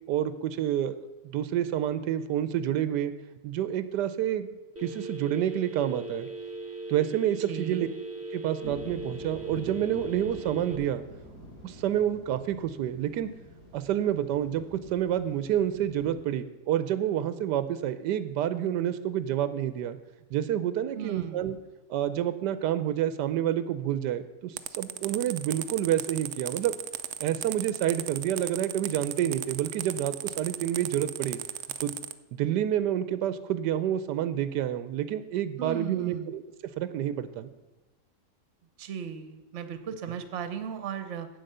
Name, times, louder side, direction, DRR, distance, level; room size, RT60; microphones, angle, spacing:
voice 1, 0.1-1.0 1.3-3.1 3.4-4.5 4.8-6.3 6.9-7.9 8.3-11.0 11.6-13.3 13.7-20.0 20.3-21.6 21.9-26.8 27.2-31.4 31.8-31.9 32.3-36.4 36.8-37.5, right 11 dB, 85° right, 13 dB, 1.2 m, -28 dB
Telephone, 4.8-10.8, right 2 dB, 15° right, 0.4 m, -39 dB
voice 2, 7.5-7.9 21.0-21.6 35.6-36.3 38.8-41.3, right 8 dB, 50° right, 10 dB, 1.0 m, -36 dB
sound 1, 8.6-16.1, equal, 75° left, 3.4 m, -47 dB
sound 2, 24.6-32.1, right 11 dB, 70° right, 0.7 m, -35 dB
8.6 x 7.8 x 6.6 m, 1.1 s
omnidirectional pair, 1.8 m